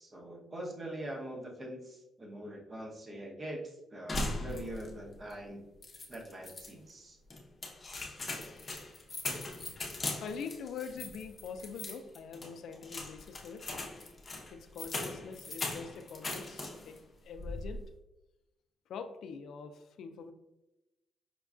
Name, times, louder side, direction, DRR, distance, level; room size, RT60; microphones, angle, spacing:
voice 1, 0.0-5.6 6.1-7.2, right 1 dB, 30° right, 0 dB, 0.9 m, -43 dB
sound 1, 4.1-5.0 5.3-5.4 5.8-6.7 7.3-17.0 17.3-17.9, left 2 dB, 35° left, 0.7 m, -40 dB
voice 2, 10.2-13.7 14.5-17.9 18.9-20.3, left 6 dB, 70° left, 8 dB, 0.3 m, -44 dB
5.1 x 2.3 x 2.3 m, 0.96 s
cardioid pair, 90°, 0 cm